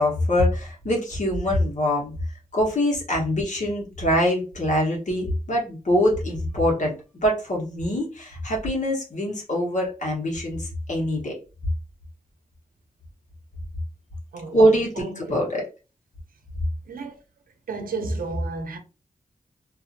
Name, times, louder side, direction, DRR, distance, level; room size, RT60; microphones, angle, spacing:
voice 1, 0.0-2.1 2.5-6.9 7.2-11.3 14.5-14.9 15.3-15.6, equal, 60° left, 1.1 m, -23 dB
voice 2, 15.0-15.3 16.9-17.1 17.7-18.8, right 2 dB, 85° right, 0.6 m, -31 dB
2.6 x 2.5 x 2.6 m
wide cardioid pair, 120°, 14 cm